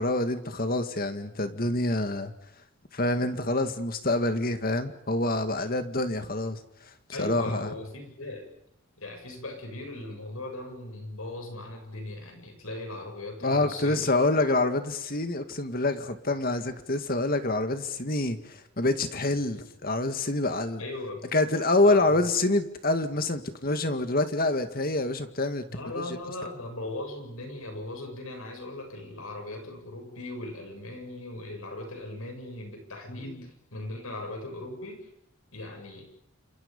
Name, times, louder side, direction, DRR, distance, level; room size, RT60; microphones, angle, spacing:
voice 1, 0.0-2.3 2.9-6.6 7.2-7.7 13.4-20.8 21.3-25.6 26.0-26.1 33.1-33.4, left 2 dB, 45° left, 2.0 m, -26 dB
voice 2, 7.1-8.5 9.0-14.2 20.8-21.3 21.8-22.3 25.7-35.1 35.5-36.2, left 2 dB, 90° left, 7.8 m, -39 dB
29.5 x 27.5 x 5.5 m
head